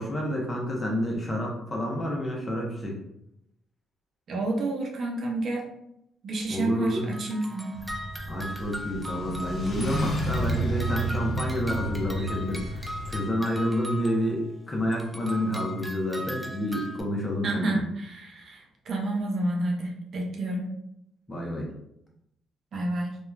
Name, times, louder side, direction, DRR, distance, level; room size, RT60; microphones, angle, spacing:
voice 1, 0.0-3.0 6.5-7.2 8.3-17.8 21.3-21.7, equal, 25° left, -2 dB, 0.8 m, -29 dB
voice 2, 4.3-5.7 6.2-7.8 17.4-20.7 22.7-23.2, right 2 dB, 55° right, 0 dB, 0.6 m, -30 dB
sound 1, 7.1-14.5 14.9-17.0, equal, ahead, 0.4 m, -39 dB
sound 2, 7.7-13.2, right 1 dB, 55° left, 0.9 m, -32 dB
2.8 x 2.2 x 2.3 m, 0.78 s
cardioid pair, 85°, 0 cm